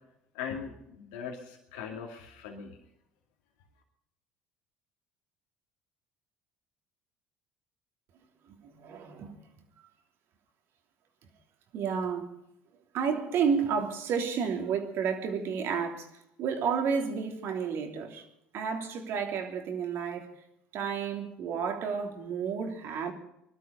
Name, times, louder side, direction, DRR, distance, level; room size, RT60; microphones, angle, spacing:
voice 1, 0.3-2.8, left 7 dB, 80° left, 2.5 m, -40 dB
voice 2, 8.7-9.3 11.7-12.3 12.9-16.1 16.4-18.2 18.5-20.4 20.7-23.1, right 6 dB, 60° right, 3.2 m, -31 dB
21.0 x 12.5 x 5.4 m
hypercardioid pair, 75°, 5 cm